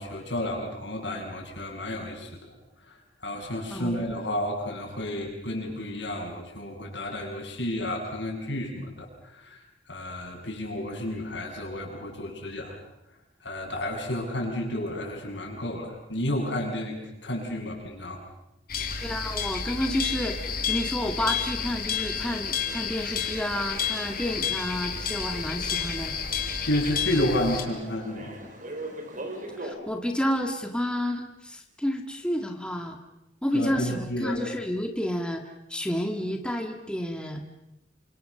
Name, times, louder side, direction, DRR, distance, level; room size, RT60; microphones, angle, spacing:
voice 1, 0.0-2.5 3.2-9.6 9.9-12.8 13.4-18.2 26.6-28.4 33.5-34.4, left 1 dB, 75° left, 0 dB, 7.6 m, -31 dB
sound 1, 18.7-27.6, left 7 dB, 55° left, 3.7 m, -31 dB
voice 2, 19.0-26.2 29.6-33.0 33.4-35.4 35.7-37.4, equal, 5° left, 3 dB, 1.9 m, -30 dB
sound 2, 19.8-29.8, right 1 dB, 45° right, 4.9 m, -43 dB
28.0 x 25.5 x 6.9 m, 0.87 s
head